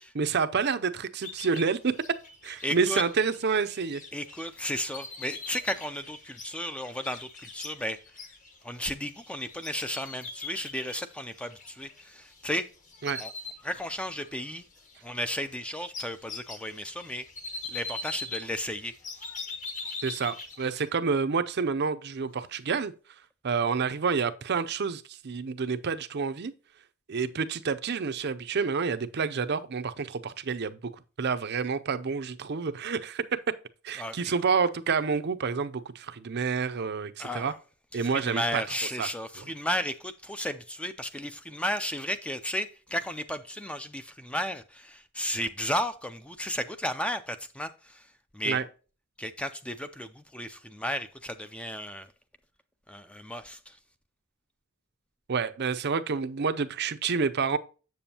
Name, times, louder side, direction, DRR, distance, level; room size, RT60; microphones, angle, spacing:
voice 1, 0.1-1.9 2.4-4.0 13.0-13.2 20.0-22.9 23.4-26.5 27.1-30.8 31.2-33.2 33.8-37.5 37.9-38.6 39.0-39.1 39.4-39.5 48.5-48.7 55.3-57.6, right 5 dB, 50° right, 0.5 m, -28 dB
sound 1, 1.2-12.5 12.8-14.3 14.6-20.9, left 3 dB, 35° left, 1.3 m, -42 dB
voice 2, 2.6-3.0 4.1-8.0 8.6-12.7 13.2-13.3 13.6-14.6 15.0-17.3 17.7-18.9 34.0-34.3 37.2-37.6 38.0-48.1 48.3-48.6 49.2-52.1 52.9-53.8, equal, 5° left, 0.4 m, -34 dB
7.7 x 7.0 x 2.8 m
head